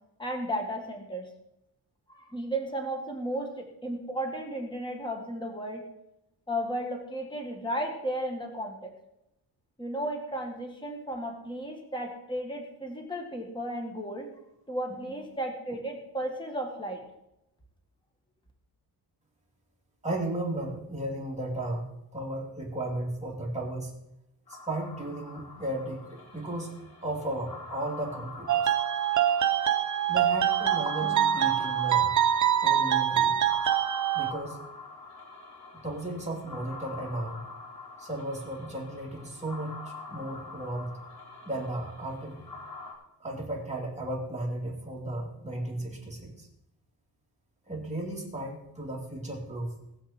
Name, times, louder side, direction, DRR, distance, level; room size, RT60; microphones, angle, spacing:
voice 1, 0.2-1.3 2.1-5.8 6.5-8.9 9.8-14.3 14.7-17.0, right 1 dB, 10° left, 2 dB, 1.8 m, -34 dB
voice 2, 20.0-21.9 22.1-23.9 24.5-28.7 30.1-32.1 32.6-33.4 34.1-34.6 35.8-37.4 38.0-40.9 41.4-42.5 43.2-46.5 47.7-49.7, right 1 dB, 15° right, -2 dB, 2.8 m, -35 dB
sound 1, 24.5-42.9, left 3 dB, 75° left, 4.7 m, -45 dB
sound 2, 28.5-34.3, right 10 dB, 45° right, 0.7 m, -25 dB
20.0 x 7.6 x 4.4 m, 0.86 s
wide cardioid pair, 155°, 41 cm